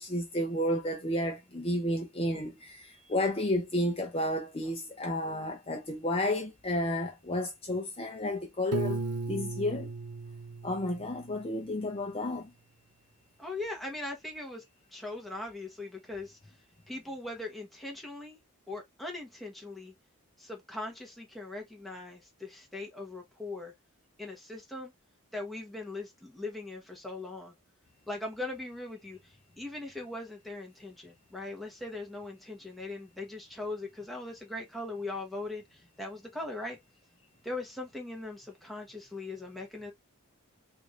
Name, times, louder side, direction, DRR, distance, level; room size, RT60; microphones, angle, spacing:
voice 1, 0.0-9.0 9.3-9.9 10.6-12.5, left 1 dB, 25° left, 0.6 m, -31 dB
Piano, 8.7-11.6, right 3 dB, 85° right, 0.4 m, -36 dB
voice 2, 13.4-14.6 14.9-16.4 16.9-18.4 18.7-19.9 20.4-23.7 24.2-24.9 25.3-27.5 28.1-36.8 37.4-39.9, left 2 dB, ahead, 1.0 m, -40 dB
4.6 x 2.6 x 2.4 m
head